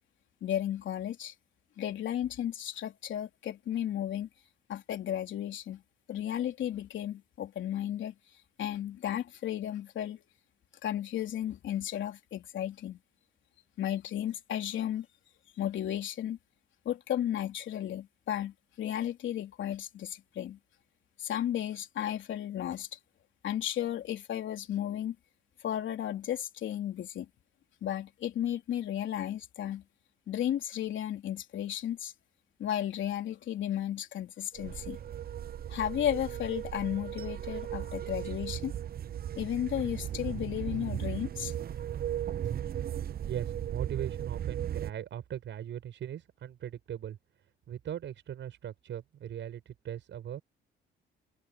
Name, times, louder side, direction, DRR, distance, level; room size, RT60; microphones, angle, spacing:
voice 1, 0.4-1.3 1.8-4.3 4.7-5.8 6.1-8.1 8.6-10.2 10.8-13.0 13.8-15.1 15.6-16.4 16.8-20.6 21.2-22.9 23.4-25.1 25.6-27.3 27.8-29.8 30.3-32.1 32.6-35.0 35.7-38.7 39.4-41.5, left 11 dB, 70° left, 3.5 m, -34 dB
sound 1, 34.5-44.9, right 10 dB, 50° right, 0.7 m, -36 dB
voice 2, 43.0-47.2 47.7-50.4, right 10 dB, 70° right, 7.2 m, -39 dB
cardioid pair, 90°, 20 cm